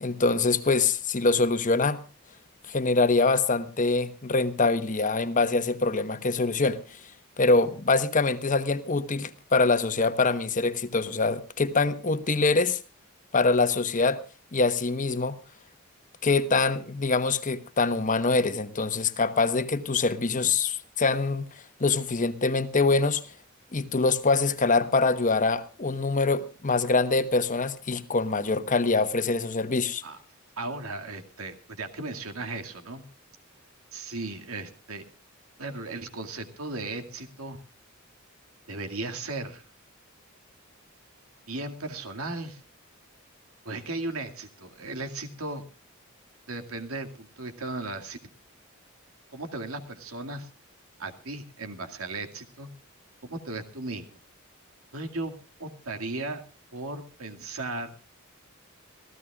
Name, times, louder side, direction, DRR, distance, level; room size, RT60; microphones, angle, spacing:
voice 1, 0.0-2.0 2.7-7.0 7.4-12.8 13.3-14.2 14.5-15.4 16.2-21.5 21.8-23.2 23.7-30.0, left 3 dB, 40° left, 1.1 m, -24 dB
voice 2, 30.6-33.0 33.9-35.0 35.6-37.6 38.7-39.6 41.5-42.6 43.6-45.6 46.5-48.2 49.3-50.5 51.0-52.7 53.2-54.2 54.9-55.3 55.6-56.4 56.7-57.9, right 2 dB, 85° right, 2.2 m, -36 dB
26.5 x 15.5 x 2.4 m
head